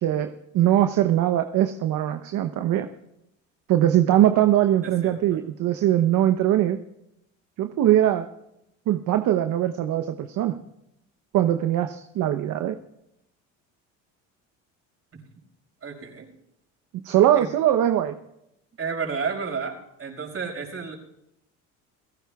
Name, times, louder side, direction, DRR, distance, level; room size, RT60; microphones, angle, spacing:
voice 1, 0.0-2.9 3.7-6.8 7.6-8.3 8.9-10.6 11.3-12.8 17.0-18.1, right 12 dB, 55° right, 8 dB, 0.9 m, -21 dB
voice 2, 4.8-5.4 15.1-15.2 15.8-16.3 17.4-17.5 18.8-21.0, right 5 dB, 35° right, 3 dB, 5.2 m, -32 dB
29.5 x 17.5 x 2.4 m, 0.86 s
hypercardioid pair, 70°, 37 cm